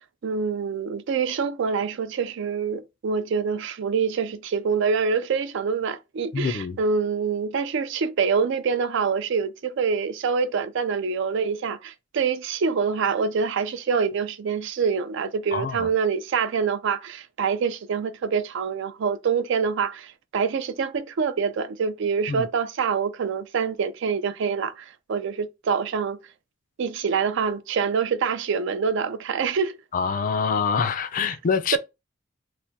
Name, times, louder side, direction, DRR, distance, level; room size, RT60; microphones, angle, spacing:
voice 1, 0.2-26.2 26.8-29.8 31.7-31.8, right 5 dB, 65° right, 0.4 m, -25 dB
voice 2, 6.3-6.8 15.5-15.9 22.3-22.5 29.9-31.8, left 5 dB, 45° left, 0.4 m, -25 dB
3.4 x 2.1 x 2.7 m
head